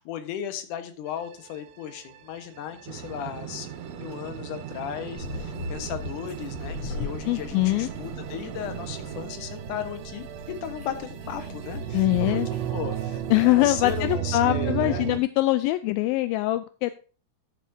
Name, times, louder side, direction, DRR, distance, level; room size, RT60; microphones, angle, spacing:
voice 1, 0.0-10.2 10.6-12.4 12.7-15.1, left 10 dB, 65° left, 9 dB, 2.4 m, -36 dB
sound 1, 1.1-15.2, right 11 dB, 85° right, 2.9 m, -35 dB
sound 2, 2.8-9.3, right 9 dB, 55° right, 2.2 m, -39 dB
sound 3, 5.1-14.1, left 3 dB, 40° left, 5.6 m, -40 dB
voice 2, 7.3-7.9 11.9-12.5 13.3-16.9, left 18 dB, 85° left, 12 dB, 2.1 m, -23 dB
11.0 x 8.4 x 2.7 m, 0.36 s
omnidirectional pair, 4.7 m